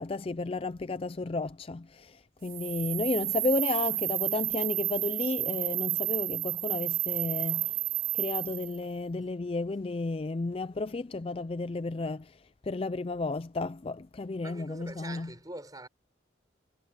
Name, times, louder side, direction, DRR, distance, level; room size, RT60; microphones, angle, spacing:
voice 1, 0.0-2.2 2.4-7.7 8.1-12.3 12.7-15.3, left 3 dB, 30° left, 0.4 m, -32 dB
sound 1, 2.5-8.8, right 17 dB, 45° right, 0.3 m, -31 dB
voice 2, 14.4-15.9, right 2 dB, 20° right, 6.1 m, -44 dB
head